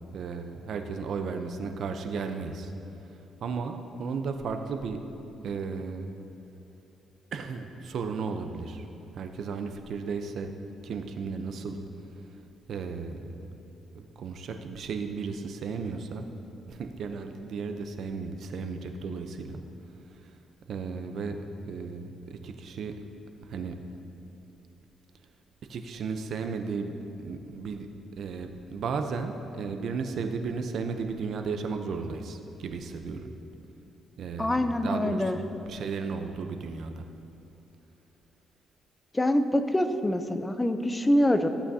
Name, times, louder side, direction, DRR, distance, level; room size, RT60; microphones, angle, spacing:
voice 1, 0.1-2.7 3.4-5.0 5.4-6.1 7.3-8.8 9.1-10.5 10.8-11.8 12.7-13.5 13.9-16.3 16.7-19.6 20.2-20.3 20.7-21.4 21.6-22.9 23.4-23.8 25.7-27.9 28.2-33.3 34.2-35.4 35.7-37.1, right 5 dB, 65° right, 6 dB, 0.7 m, -34 dB
voice 2, 34.4-35.4 39.1-41.5, left 1 dB, 15° left, 9 dB, 0.6 m, -25 dB
15.5 x 8.5 x 2.8 m, 3.0 s
cardioid pair, 90°, 0 cm